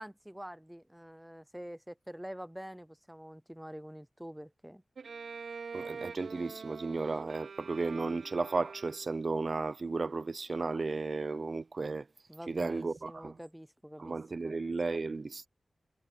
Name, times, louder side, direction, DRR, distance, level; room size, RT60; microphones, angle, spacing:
voice 1, 0.0-4.8 12.3-14.2 14.4-14.5, equal, 5° right, 0.7 m, -46 dB
Bowed string instrument, 5.0-9.4, right 5 dB, 85° right, 2.6 m, -45 dB
voice 2, 5.7-12.1 12.5-13.4 14.0-15.5, right 3 dB, 45° right, 0.7 m, -34 dB
wide cardioid pair, 95°, 0 cm